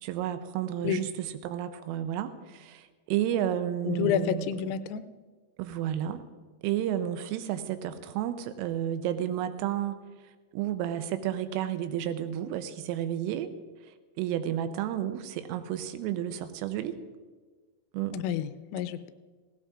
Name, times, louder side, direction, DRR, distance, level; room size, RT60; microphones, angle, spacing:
voice 1, 0.0-4.5 5.6-6.3 6.6-10.0 10.5-13.5 14.2-17.0 17.9-18.2, right 11 dB, 90° right, 10 dB, 3.3 m, -31 dB
voice 2, 3.9-5.0 18.1-19.1, left 8 dB, 85° left, 12 dB, 3.3 m, -29 dB
18.0 x 17.0 x 2.5 m, 1.4 s
omnidirectional pair, 5.8 m